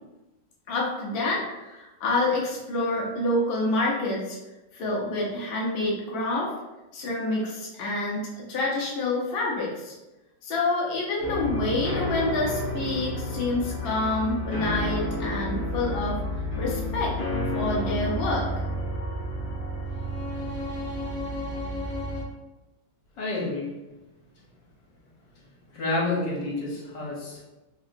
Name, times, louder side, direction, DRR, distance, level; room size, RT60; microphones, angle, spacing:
voice 1, 0.7-4.4 4.7-6.5 6.9-9.9 10.4-16.2 16.6-17.1 17.5-18.5, left 2 dB, 90° left, -3 dB, 0.5 m, -27 dB
sound 1, 11.2-22.2, left 1 dB, 50° left, 0.7 m, -30 dB
voice 2, 23.2-23.7 25.7-27.4, left 2 dB, 70° left, -5 dB, 1.6 m, -29 dB
3.3 x 2.8 x 2.5 m, 1.0 s
omnidirectional pair, 2.1 m